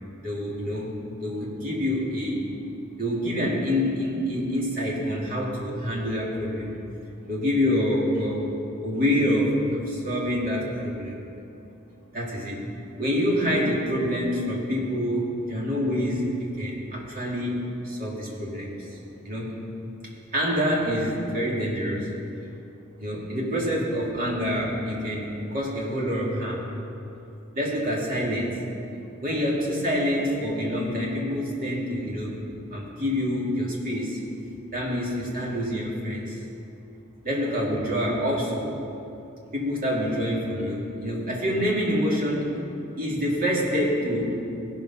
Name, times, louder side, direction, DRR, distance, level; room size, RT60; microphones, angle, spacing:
voice 1, 0.2-1.0 1.2-2.5 3.0-6.7 7.3-11.2 12.1-12.6 13.0-19.0 19.2-19.6 20.3-22.1 23.0-26.6 27.5-28.6 29.2-32.4 32.7-34.2 34.7-36.4 37.2-38.7 39.5-42.5 43.0-44.5, equal, 40° right, -4 dB, 2.4 m, -26 dB
16.5 x 5.7 x 5.7 m, 2.8 s
head